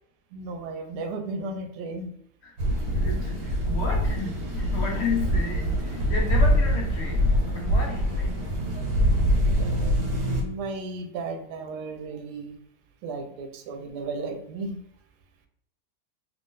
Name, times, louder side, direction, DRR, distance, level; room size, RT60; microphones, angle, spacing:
voice 1, 0.3-2.1 9.6-12.5 13.0-14.8, right 3 dB, 85° right, 6 dB, 1.2 m, -35 dB
sound 1, 2.6-10.4, equal, 60° right, 1.4 m, -24 dB
voice 2, 2.9-8.5, left 4 dB, 65° left, 0 dB, 0.6 m, -33 dB
3.1 x 2.5 x 3.6 m, 0.75 s
omnidirectional pair, 1.7 m